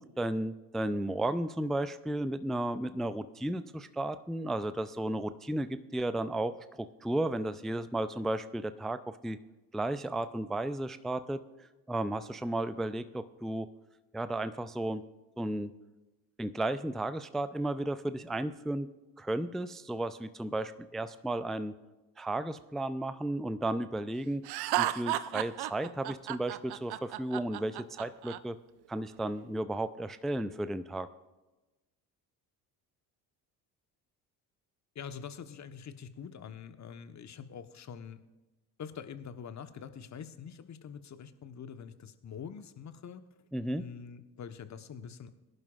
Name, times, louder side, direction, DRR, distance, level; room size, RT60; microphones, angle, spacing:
voice 1, 0.0-9.4 9.7-11.4 11.9-13.7 14.1-15.0 15.4-15.7 16.4-18.9 19.2-21.7 22.2-24.4 24.8-28.6 28.9-31.1 43.5-43.8, right 1 dB, ahead, 13 dB, 0.4 m, -34 dB
Laughter, 24.5-28.4, right 14 dB, 50° right, 0.7 m, -33 dB
voice 2, 34.9-38.2 38.8-43.3 43.8-45.3, left 7 dB, 35° left, 10 dB, 1.1 m, -45 dB
22.5 x 11.0 x 2.4 m, 1.1 s
hypercardioid pair, 55°, 49 cm